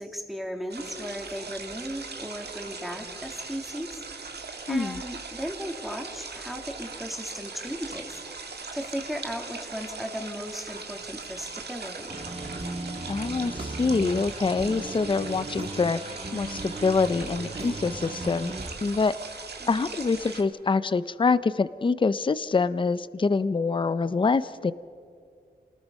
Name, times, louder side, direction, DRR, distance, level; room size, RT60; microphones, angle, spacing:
voice 1, 0.0-8.4 8.7-12.2 19.6-20.0, equal, ahead, 3 dB, 2.6 m, -36 dB
sound 1, 0.7-20.4, right 4 dB, 70° right, 1.9 m, -40 dB
voice 2, 4.7-5.0 13.1-18.5 18.8-19.3 19.7-24.7, left 4 dB, 30° left, 15 dB, 0.5 m, -25 dB
sound 2, 12.1-18.7, right 2 dB, 35° right, 1.7 m, -37 dB
28.0 x 19.5 x 5.4 m, 2.3 s
wide cardioid pair, 90°, 17 cm